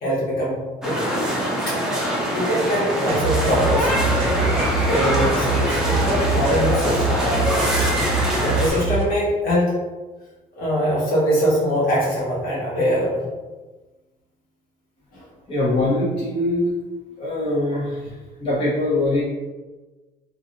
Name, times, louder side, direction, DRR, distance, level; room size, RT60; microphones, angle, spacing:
voice 1, 0.0-1.2 1.7-1.8 2.1-4.2 4.9-7.3 7.8-7.9 8.4-9.8 10.6-13.2 15.1-15.2, equal, 60° left, -6 dB, 1.3 m, -23 dB
sound 1, 0.8-8.7, equal, 5° right, 0.7 m, -23 dB
sound 2, 3.1-9.1, right 3 dB, 35° right, 0.8 m, -24 dB
voice 2, 15.5-16.7 17.2-19.2, left 1 dB, 30° left, -8 dB, 0.9 m, -22 dB
3.2 x 2.5 x 2.7 m, 1.2 s
cardioid pair, 110°, 17 cm